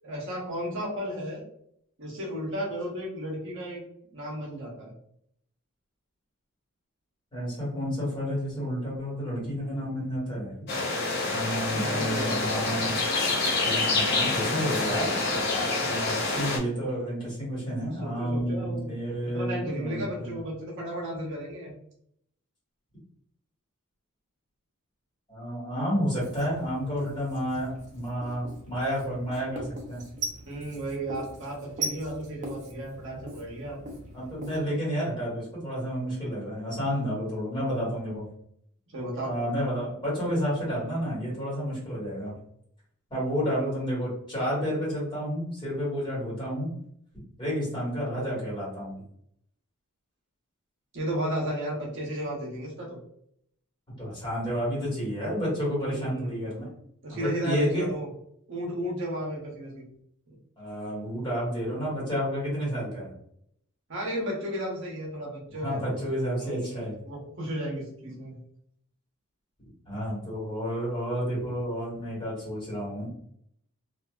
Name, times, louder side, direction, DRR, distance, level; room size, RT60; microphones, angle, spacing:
voice 1, 0.0-1.4 2.0-3.8 4.1-4.9 11.7-12.6 17.9-18.8 19.3-21.7 30.5-33.8 38.9-39.3 50.9-53.0 55.8-56.5 57.0-58.1 58.5-59.9 60.3-60.4 63.9-66.0 66.4-68.4, right 1 dB, 55° right, -3 dB, 0.8 m, -34 dB
voice 2, 7.3-10.5 11.3-13.1 13.6-15.1 15.8-20.4 25.3-30.0 34.1-38.2 39.2-42.3 43.1-46.7 47.4-49.0 54.0-56.6 57.1-58.0 60.6-63.1 65.6-67.0 69.9-73.1, equal, 20° left, -7 dB, 1.5 m, -30 dB
sound 1, 10.7-16.6, left 3 dB, 50° left, 0.8 m, -27 dB
Writing, 26.1-34.6, right 2 dB, 35° right, 0.5 m, -40 dB
2.6 x 2.4 x 2.3 m, 0.70 s
head